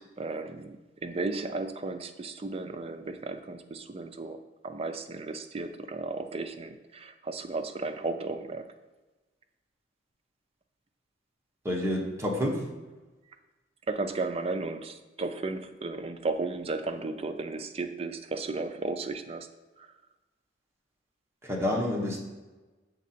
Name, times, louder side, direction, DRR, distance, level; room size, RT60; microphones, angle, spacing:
voice 1, 0.0-4.4 4.6-8.6 13.9-19.5 19.8-19.9, right 3 dB, 30° right, 8 dB, 0.4 m, -34 dB
voice 2, 11.6-12.6 21.4-22.2, left 1 dB, 15° right, -2 dB, 0.9 m, -28 dB
7.2 x 3.7 x 4.2 m, 1.2 s
head